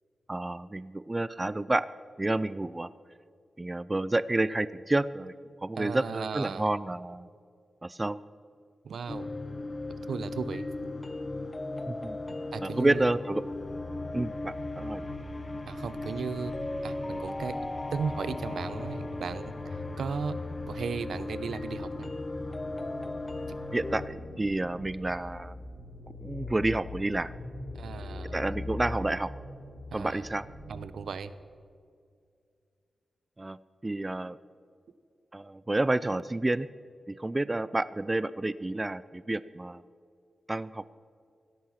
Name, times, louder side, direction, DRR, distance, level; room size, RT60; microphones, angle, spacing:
voice 1, 0.3-1.9 2.2-2.9 3.6-5.3 5.6-7.3 7.8-8.2 11.9-12.2 12.6-13.4 14.1-15.1 23.7-25.5 26.2-27.3 28.3-29.3 29.9-30.5 33.4-33.6 33.8-34.4 35.3-36.7 37.1-39.8 40.5-40.9, right 2 dB, 20° right, 17 dB, 0.3 m, -29 dB
voice 2, 5.8-6.7 8.8-9.3 10.1-10.6 12.5-13.1 15.7-16.5 16.8-17.6 17.9-20.4 20.7-22.1 23.5-23.6 27.7-28.4 29.9-30.3 30.7-31.3, right 6 dB, 90° right, 14 dB, 0.8 m, -36 dB
sound 1, 9.1-24.1, left 2 dB, 25° left, 0.7 m, -37 dB
sound 2, 13.5-30.8, left 2 dB, 80° left, 4.4 m, -43 dB
16.5 x 13.0 x 5.8 m, 2.3 s
wide cardioid pair, 125°, 0 cm